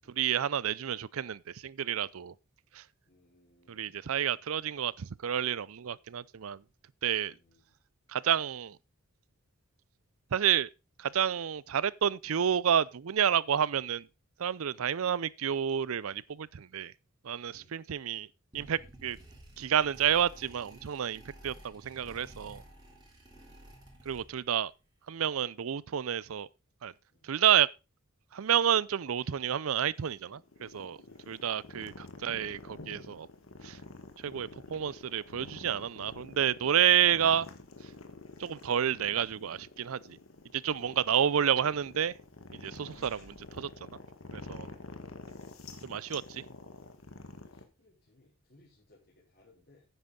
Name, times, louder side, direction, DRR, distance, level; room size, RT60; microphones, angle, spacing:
voice 1, 0.1-2.3 2.7-2.8 3.7-6.6 7.0-7.3 8.1-8.8 10.3-10.7 11.0-14.1 14.4-16.9 17.2-18.3 18.5-19.2 19.6-22.6 24.1-24.7 25.1-26.5 26.8-26.9 27.2-27.7 28.3-31.0 31.3-33.3 33.6-33.8 34.2-37.5 38.4-40.2 40.5-42.1 42.5-43.9 44.3-44.7 45.8-46.4, right 9 dB, 80° right, 0.5 m, -30 dB
voice 2, 3.1-3.9 7.3-7.8 17.5-17.8 21.4-21.5 23.3-23.6 27.1-27.3 31.1-31.4 46.3-46.7 47.4-49.9, left 1 dB, 50° left, 3.8 m, -64 dB
sound 1, 18.5-24.6, right 1 dB, 20° right, 3.1 m, -53 dB
sound 2, 30.0-47.7, left 2 dB, 75° left, 1.6 m, -48 dB
9.8 x 9.2 x 3.8 m
head